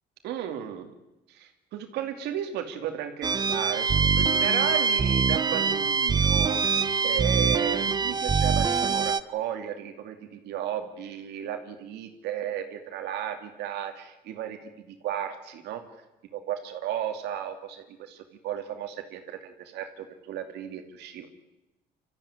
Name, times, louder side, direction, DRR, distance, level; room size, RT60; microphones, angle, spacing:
voice 1, 0.2-0.9 1.3-6.6 7.0-14.6 14.9-15.8 16.3-21.3, right 10 dB, 80° right, 6 dB, 2.6 m, -34 dB
sound 1, 3.2-9.2, right 5 dB, 25° right, 0.7 m, -24 dB
25.5 x 14.0 x 9.9 m, 0.98 s
cardioid pair, 110°, 17 cm